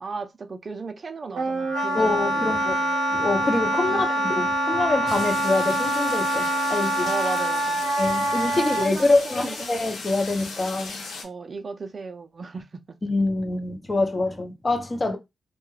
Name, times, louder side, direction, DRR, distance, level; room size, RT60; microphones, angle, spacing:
voice 1, 0.0-2.9 3.9-4.3 7.0-7.8 8.6-9.7 11.2-13.0, right 4 dB, 50° right, 0.4 m, -35 dB
Wind instrument woodwind instrument, 1.3-8.9, right 1 dB, 85° right, 0.6 m, -25 dB
voice 2, 1.9-2.8 3.1-7.1 8.0-11.0 13.0-15.2, left 2 dB, 35° left, 0.8 m, -25 dB
sound 1, 5.1-11.2, left 3 dB, 85° left, 0.7 m, -37 dB
2.2 x 2.2 x 3.2 m
cardioid pair, 60°, 0 cm